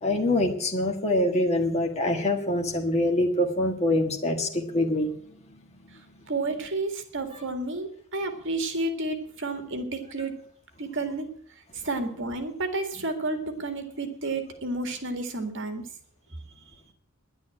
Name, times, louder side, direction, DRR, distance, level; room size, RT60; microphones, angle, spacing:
voice 1, 0.0-5.1, left 1 dB, 30° left, 1.5 m, -25 dB
voice 2, 6.3-10.3 10.8-11.3 11.7-15.8, right 2 dB, 60° right, 2.0 m, -31 dB
10.5 x 10.5 x 8.7 m
head